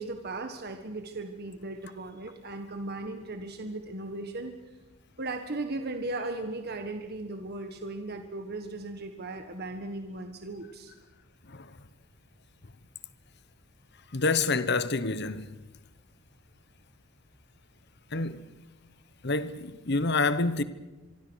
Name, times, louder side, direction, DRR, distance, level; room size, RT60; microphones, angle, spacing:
voice 1, 0.0-4.5 5.2-10.9, right 2 dB, 50° right, 1.6 m, -37 dB
voice 2, 14.1-15.5 18.1-18.5 19.2-20.6, left 3 dB, 50° left, 1.1 m, -27 dB
26.0 x 23.5 x 6.4 m
head